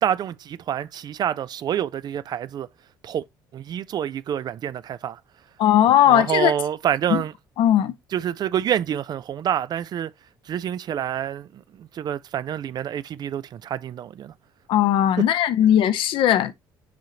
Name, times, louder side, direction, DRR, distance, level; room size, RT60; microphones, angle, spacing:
voice 1, 0.0-2.7 3.0-3.2 3.5-5.2 6.1-7.3 8.1-10.1 10.5-14.3, right 10 dB, 40° right, 0.4 m, -27 dB
voice 2, 5.6-6.5 7.1-7.2 7.6-8.0 14.7-16.5, left 11 dB, 55° left, 0.6 m, -18 dB
9.3 x 3.7 x 2.9 m
figure-of-eight pair, 50°, 11 cm